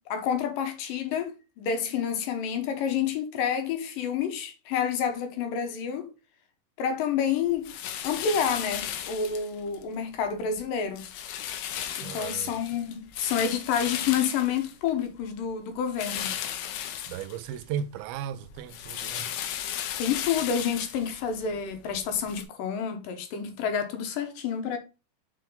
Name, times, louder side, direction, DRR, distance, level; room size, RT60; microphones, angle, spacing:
voice 1, 0.1-1.3 1.6-6.1 6.8-7.7 8.0-11.1 12.0-16.3 20.0-24.8, left 7 dB, 70° left, 2.7 m, -29 dB
sound 1, 7.6-9.8 10.2-10.6 11.0-15.2 15.9-17.8 18.2-22.4, left 10 dB, 85° left, 2.9 m, -36 dB
voice 2, 12.0-12.5 17.1-19.3, right 9 dB, 85° right, 2.4 m, -36 dB
6.9 x 4.6 x 3.8 m
omnidirectional pair, 4.4 m